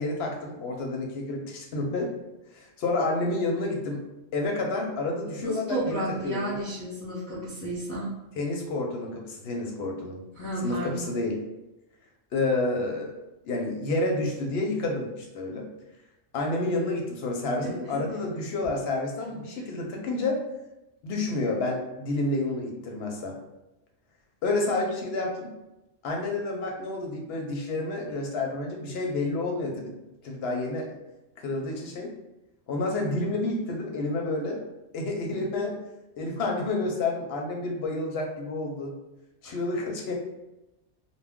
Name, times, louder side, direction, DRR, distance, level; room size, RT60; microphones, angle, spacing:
voice 1, 0.0-2.1 2.5-4.0 4.3-6.6 8.4-10.2 10.6-11.4 12.3-13.1 13.4-15.7 16.3-20.4 21.0-23.4 24.4-25.5 26.0-29.9 30.2-30.9 31.4-32.1 32.7-34.6 34.9-35.8 36.2-38.9 39.4-40.1, left 2 dB, 65° left, 1 dB, 0.7 m, -29 dB
voice 2, 5.4-8.1 10.3-11.1 17.6-17.7 39.4-39.5, right 1 dB, 20° left, -9 dB, 0.6 m, -32 dB
2.2 x 2.1 x 3.5 m, 0.96 s
omnidirectional pair, 1.3 m